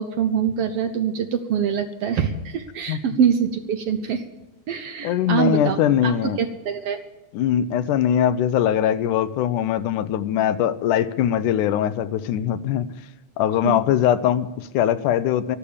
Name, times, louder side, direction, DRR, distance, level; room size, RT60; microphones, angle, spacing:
voice 1, 0.0-4.2 4.7-5.8 6.0-6.1 6.4-7.0 13.6-13.8, right 7 dB, 70° right, 8 dB, 1.5 m, -24 dB
voice 2, 5.0-6.4 7.3-12.9 13.4-15.6, left 10 dB, 85° left, 13 dB, 2.3 m, -21 dB
13.5 x 12.0 x 7.1 m, 1.1 s
omnidirectional pair, 3.5 m